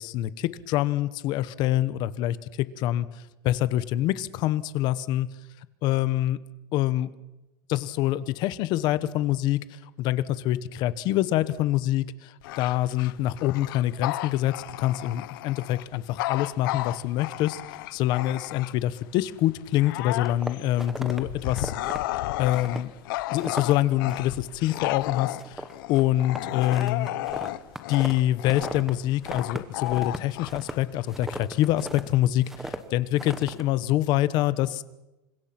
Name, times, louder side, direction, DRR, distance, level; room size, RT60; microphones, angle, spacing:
voice 1, 0.0-3.1 3.4-5.3 5.8-6.4 6.7-7.1 7.7-21.7 22.4-22.9 23.3-27.1 27.9-34.8, left 14 dB, 40° left, 15 dB, 1.1 m, -26 dB
Bark / Growling, 12.4-19.0 19.4-31.3, left 17 dB, 80° left, 1.0 m, -33 dB
sound 1, 20.2-21.2 21.5-22.0 22.5-22.9 23.2-23.8 24.1-24.4 24.7-25.1 25.4-28.9 29.2-32.1 32.5-32.8 33.2-33.6, right 1 dB, 5° right, 1.4 m, -37 dB
28.5 x 25.5 x 6.0 m, 0.99 s
cardioid pair, 180°, 11 cm